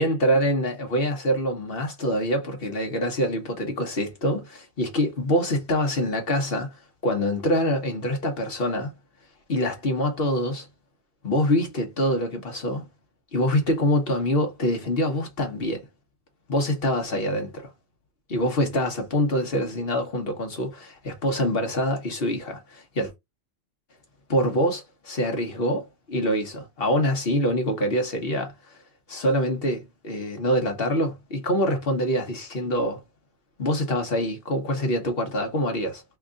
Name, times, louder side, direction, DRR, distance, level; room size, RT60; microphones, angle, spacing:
voice 1, 0.0-6.8 7.0-8.9 9.5-10.7 11.2-12.9 13.3-15.8 16.5-17.7 18.3-23.1 24.3-28.8 29.1-33.0 33.6-36.2, equal, 50° left, 1.4 m, -25 dB
3.6 x 2.4 x 3.7 m
omnidirectional pair, 1.3 m